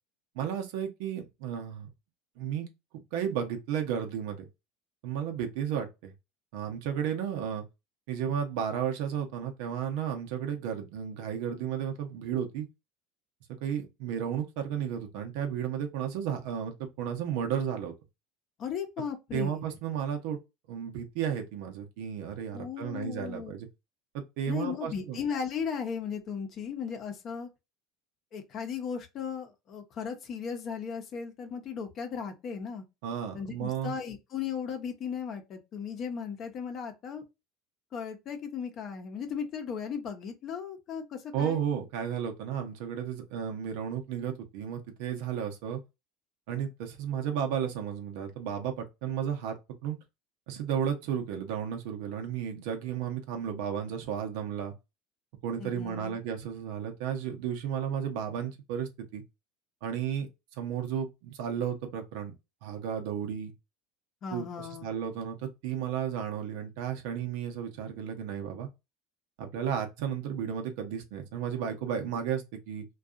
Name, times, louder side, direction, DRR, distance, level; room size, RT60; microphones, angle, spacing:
voice 1, 0.4-1.9 2.4-2.7 2.9-4.5 5.0-6.1 6.5-7.6 8.1-12.7 13.6-17.9 19.3-20.4 20.7-23.7 24.1-25.2 33.0-33.9 41.3-45.8 46.5-49.6 49.8-50.0 50.5-54.7 55.4-59.2 59.8-60.3 60.6-62.3 62.6-63.5 64.3-68.7 69.4-72.9, right 8 dB, 75° right, 0.7 m, -33 dB
voice 2, 18.6-19.6 22.5-23.5 24.5-27.5 28.3-32.8 33.3-37.3 37.9-41.6 55.6-56.2 64.2-64.9, left 7 dB, 50° left, 0.7 m, -36 dB
2.6 x 2.3 x 2.4 m
supercardioid pair, 95°, 0 cm